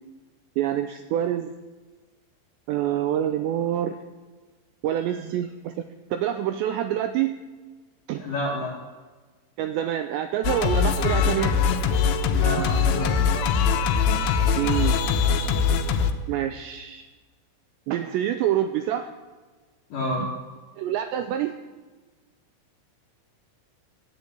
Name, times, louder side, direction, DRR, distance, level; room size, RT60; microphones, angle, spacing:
voice 1, 0.6-1.5 2.7-4.0 4.8-5.7 6.1-7.4 8.1-8.2 9.6-11.6 14.5-15.0 16.3-17.1 17.9-19.1 20.2-20.4 20.8-21.5, right 11 dB, 85° right, 8 dB, 2.6 m, -26 dB
voice 2, 8.2-8.7 12.3-13.4 19.9-20.3, left 1 dB, 55° left, -4 dB, 3.1 m, -29 dB
Singing, 10.4-16.1, left 6 dB, 80° left, 3.3 m, -22 dB
14.5 x 9.4 x 8.4 m, 1.3 s
omnidirectional pair, 5.6 m